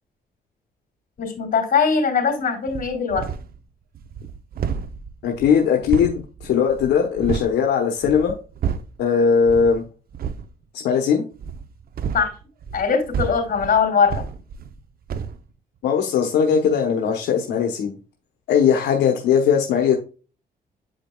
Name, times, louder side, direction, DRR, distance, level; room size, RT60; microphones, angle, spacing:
voice 1, 1.2-3.3 12.1-12.3 12.7-14.2, left 6 dB, 55° left, 5 dB, 3.1 m, -21 dB
sound 1, 2.7-3.6 3.9-7.6 8.0-9.0 9.4-9.8 10.1-10.5 11.4-14.8 15.1-15.4, right 7 dB, 60° right, 0.7 m, -30 dB
voice 2, 5.2-8.3 9.0-9.8 10.7-11.2 15.8-17.9 18.5-20.0, left 7 dB, 85° left, 2 dB, 1.0 m, -19 dB
8.0 x 5.1 x 2.3 m, 0.35 s
cardioid pair, 75°, 17 cm